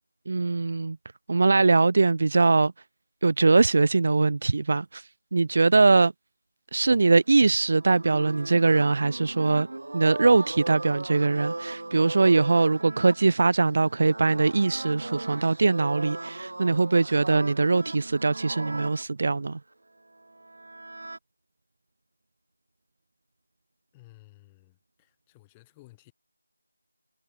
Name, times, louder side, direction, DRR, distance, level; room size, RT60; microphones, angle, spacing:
voice 1, 0.3-1.0 1.3-2.7 3.2-6.1 6.7-9.7 9.9-19.6, right 3 dB, 40° right, 0.6 m, -22 dB
sound 1, 7.3-19.0 20.1-21.2, right 2 dB, 60° right, 1.3 m, -38 dB
voice 2, 23.9-26.1, left 21 dB, 10° left, 5.8 m, -55 dB
figure-of-eight pair, 170°, 0 cm